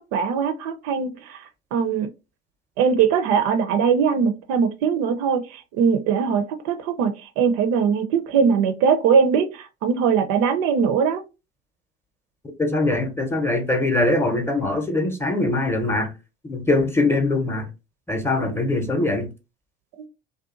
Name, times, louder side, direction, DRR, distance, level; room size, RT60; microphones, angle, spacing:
voice 1, 0.1-2.1 2.8-11.2 18.4-18.6 20.0-20.1, right 6 dB, 60° right, 0.5 m, -21 dB
voice 2, 12.6-16.1 16.4-17.7 18.1-19.3, left 2 dB, 10° left, 0.7 m, -22 dB
2.6 x 2.2 x 2.4 m
hypercardioid pair, 70°, 31 cm